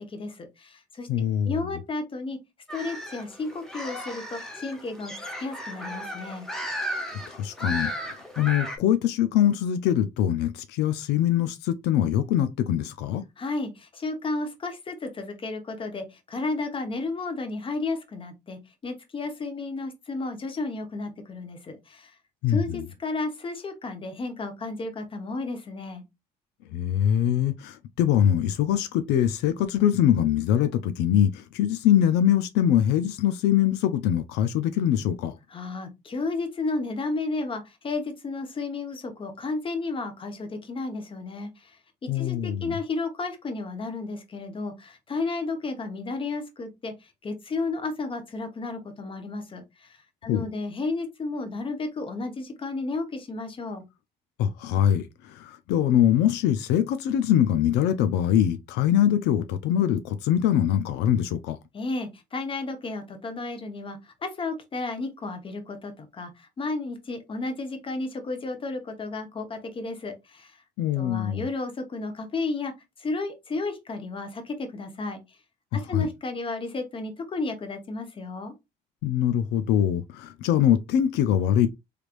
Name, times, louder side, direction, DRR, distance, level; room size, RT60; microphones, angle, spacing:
voice 1, 0.1-1.1 1.4-2.4 2.7-6.5 13.4-22.2 22.5-26.0 35.5-41.8 42.1-53.8 61.7-70.6 71.0-72.7 73.0-75.4 75.7-78.5, left 3 dB, 30° left, 1.0 m, -33 dB
voice 2, 1.1-1.6 7.3-13.2 22.4-22.8 26.7-35.4 42.1-42.7 50.3-50.5 54.4-61.6 70.8-71.4 75.7-76.1 79.0-81.7, left 10 dB, 85° left, 0.4 m, -23 dB
sound 1, 2.7-8.8, equal, 5° left, 0.9 m, -35 dB
3.3 x 3.2 x 2.5 m
cardioid pair, 110°, 17 cm